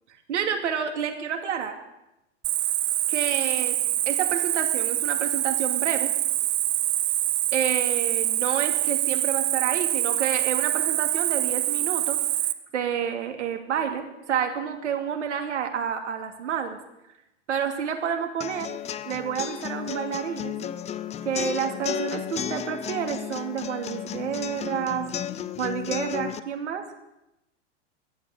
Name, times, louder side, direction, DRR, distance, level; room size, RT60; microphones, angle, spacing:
voice 1, 0.3-1.8 3.1-3.8 4.1-6.1 7.5-12.2 12.7-16.8 17.5-18.8 19.0-20.5 21.2-25.1 25.6-26.8, right 8 dB, 75° right, 5 dB, 2.6 m, -29 dB
Cricket, 2.4-12.5, right 14 dB, 30° right, 0.9 m, -25 dB
sound 1, 18.4-26.4, left 9 dB, 20° left, 0.6 m, -33 dB
15.5 x 11.0 x 8.1 m, 0.92 s
hypercardioid pair, 100°, 36 cm